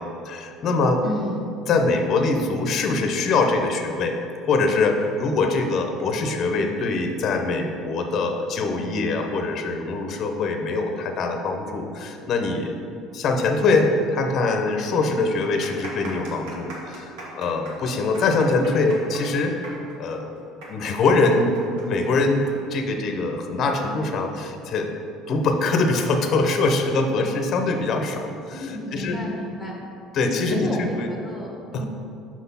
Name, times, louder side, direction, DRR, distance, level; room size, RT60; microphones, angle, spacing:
voice 1, 0.0-1.0 1.7-4.2 4.5-12.7 13.1-19.7 20.0-20.3 20.7-21.5 21.8-24.9 25.3-29.2 30.1-31.1 31.7-31.8, left 3 dB, 35° left, 4 dB, 0.6 m, -23 dB
voice 2, 1.0-1.5 28.5-29.7 30.2-31.8, left 1 dB, ahead, -2 dB, 0.9 m, -32 dB
sound 1, 14.2-14.3 14.6-14.7 15.3-22.5 22.8-22.9 23.7-24.0, right 2 dB, 80° right, 1.6 m, -40 dB
6.0 x 4.1 x 5.5 m, 2.6 s
cardioid pair, 170°, 0 cm